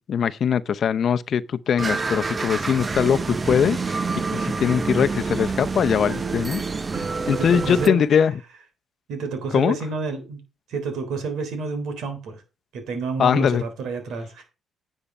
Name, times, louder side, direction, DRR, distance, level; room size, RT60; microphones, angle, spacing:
voice 1, 0.1-4.0 4.3-6.6 7.3-8.3 9.5-9.8 13.2-13.6, left 7 dB, 55° left, 0.7 m, -21 dB
sound 1, 1.8-7.9, right 4 dB, 30° right, 0.7 m, -27 dB
voice 2, 6.9-8.0 9.1-10.4 10.7-12.4 12.7-14.4, right 4 dB, 80° right, 3.5 m, -29 dB
10.0 x 6.6 x 5.4 m
cardioid pair, 90°, 0 cm